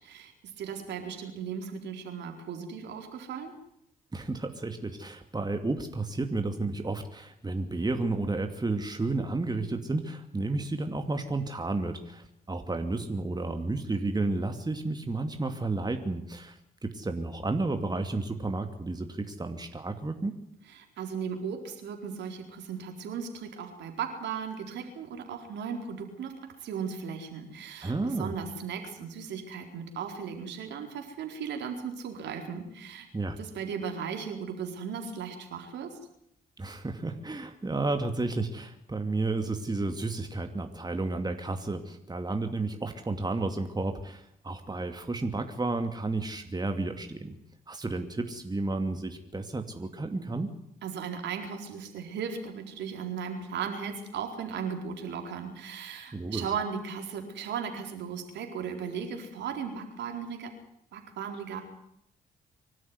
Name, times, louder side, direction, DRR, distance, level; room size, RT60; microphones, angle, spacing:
voice 1, 0.0-3.5 20.7-26.3 26.6-33.1 33.4-36.0 50.8-60.5 60.9-61.6, right 6 dB, 65° right, 4 dB, 4.4 m, -36 dB
voice 2, 4.1-20.3 27.8-28.3 33.1-33.4 36.6-47.3 47.7-50.5 56.1-56.5, right 2 dB, 20° right, 6 dB, 2.6 m, -32 dB
25.0 x 12.5 x 9.7 m, 0.75 s
hypercardioid pair, 45°, 19 cm